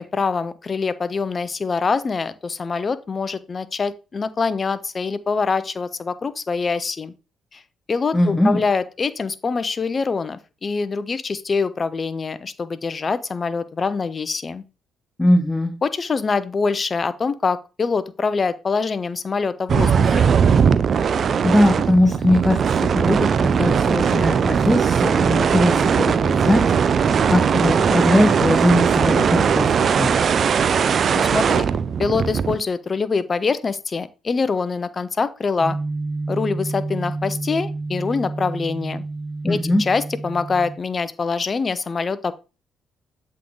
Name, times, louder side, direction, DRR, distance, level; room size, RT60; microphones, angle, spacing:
voice 1, 0.0-7.1 7.5-7.6 7.9-14.6 15.8-20.3 31.1-31.7 32.0-35.8 36.3-39.0 39.4-42.3, left 4 dB, 40° left, 14 dB, 0.6 m, -24 dB
voice 2, 8.1-8.6 15.2-15.7 21.2-30.1 39.4-39.8, left 1 dB, 10° left, 3 dB, 1.0 m, -20 dB
sound 1, 19.7-32.6, right 6 dB, 55° right, 0.4 m, -19 dB
sound 2, 35.6-40.8, right 3 dB, 20° right, 2.5 m, -29 dB
7.5 x 3.8 x 3.7 m, 0.31 s
supercardioid pair, 55°, 0 cm